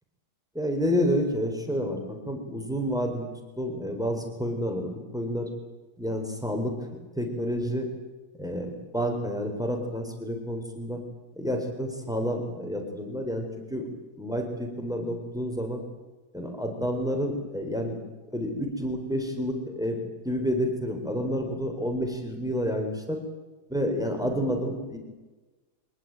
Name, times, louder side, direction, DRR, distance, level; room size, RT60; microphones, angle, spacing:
voice 1, 0.5-3.3 3.6-5.5 6.0-6.7 7.2-7.9 8.4-11.0 11.4-13.5 13.7-13.9 14.2-15.8 16.3-18.0 18.3-20.0 20.2-23.2 23.7-25.0, equal, ahead, 4 dB, 4.0 m, -29 dB
23.5 x 19.5 x 9.0 m, 1.2 s
omnidirectional pair, 1.7 m